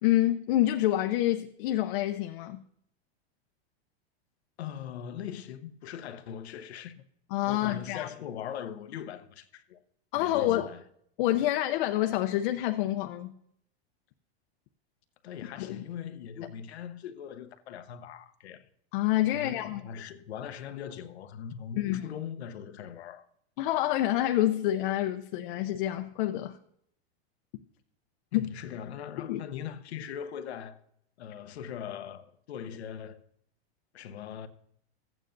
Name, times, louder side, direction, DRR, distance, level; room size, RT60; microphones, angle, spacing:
voice 1, 0.0-2.6 7.3-8.1 10.1-10.7 11.2-13.3 15.6-15.8 18.9-19.8 21.8-22.0 23.6-26.6 28.3-28.5 29.2-29.4, left 14 dB, 55° left, 0.6 m, -27 dB
voice 2, 4.6-7.0 7.5-9.8 10.1-10.8 15.2-18.7 19.3-23.3 28.3-30.8 31.2-33.2 33.9-34.5, left 8 dB, 90° left, 0.9 m, -41 dB
14.5 x 9.0 x 2.6 m
supercardioid pair, 140°, 32 cm